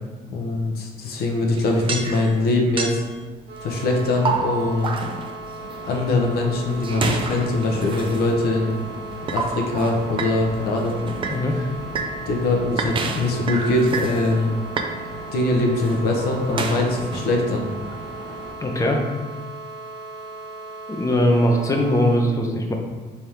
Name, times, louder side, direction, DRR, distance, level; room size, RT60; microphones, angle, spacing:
voice 1, 0.3-3.0 3.6-4.9 5.8-8.8 9.3-11.0 12.3-14.6 15.3-17.7, left 2 dB, 65° left, 1 dB, 0.7 m, -22 dB
sound 1, 1.6-2.5 2.8-3.2 3.7-6.1 6.8-8.3 9.1-10.4 10.8-11.5 12.0-12.2 12.8-14.3 14.6-14.9 15.7-17.2, right 4 dB, 30° right, 0.4 m, -29 dB
sound 2, 3.5-22.2, right 3 dB, 85° right, 0.9 m, -37 dB
sound 3, 5.6-18.5, right 1 dB, 45° right, 0.9 m, -39 dB
voice 2, 18.6-19.0 20.9-22.7, equal, 20° left, 2 dB, 0.6 m, -20 dB
3.4 x 3.3 x 2.9 m, 1.4 s
cardioid pair, 110°, 17 cm